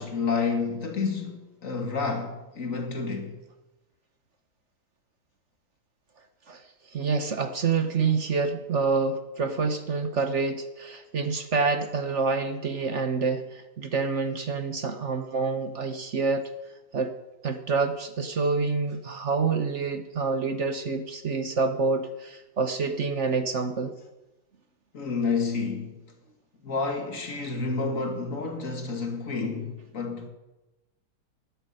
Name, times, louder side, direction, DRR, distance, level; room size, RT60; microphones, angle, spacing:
voice 1, 0.0-3.4 24.9-26.0 26.6-30.3, left 4 dB, 45° left, 2.5 m, -29 dB
voice 2, 6.9-16.5 16.9-17.1 17.4-23.9, right 4 dB, 45° right, 1.1 m, -27 dB
12.5 x 11.5 x 9.0 m
omnidirectional pair, 2.0 m